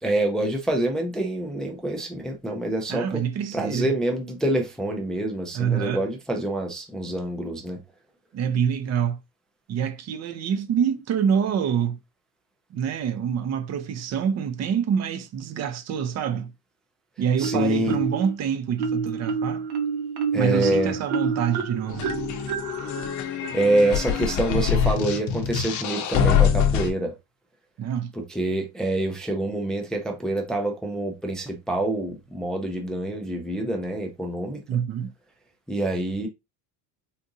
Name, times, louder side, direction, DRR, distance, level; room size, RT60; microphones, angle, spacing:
voice 1, 0.0-3.2 3.5-7.8 17.4-18.0 20.3-20.9 23.5-27.1 28.1-34.6 35.7-36.3, right 1 dB, ahead, 0.4 m, -26 dB
voice 2, 2.9-3.9 5.5-6.0 8.3-9.2 9.7-12.0 12.7-16.5 17.2-19.6 20.3-22.1 27.8-28.1 34.7-35.1, right 8 dB, 40° right, 0.6 m, -26 dB
Marimba xylophone, 17.4-18.3 18.8-24.3, right 5 dB, 70° right, 0.9 m, -29 dB
sound 1, 21.9-26.9, left 7 dB, 45° left, 0.7 m, -24 dB
3.7 x 2.5 x 2.6 m
cardioid pair, 135°, 41 cm